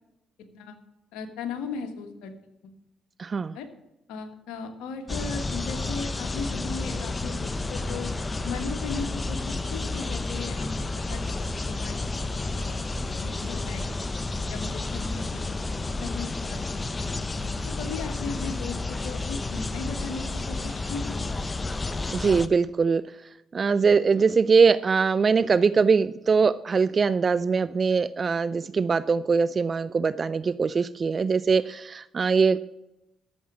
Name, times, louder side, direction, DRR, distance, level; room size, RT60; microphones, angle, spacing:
voice 1, 1.1-2.3 2.6-2.7 3.5-3.7 4.1-8.1 8.4-10.7 10.9-12.0 12.6-12.7 13.2-13.9 14.5-15.4 16.0-16.6 17.7-21.2, left 5 dB, 85° left, 7 dB, 1.4 m, -37 dB
voice 2, 3.2-3.6 22.1-23.0 23.5-32.6, right 5 dB, 45° right, 16 dB, 0.4 m, -22 dB
sound 1, 5.1-22.5, left 2 dB, 30° left, 0.7 m, -31 dB
13.0 x 7.1 x 6.2 m, 0.90 s
supercardioid pair, 60°, 0 cm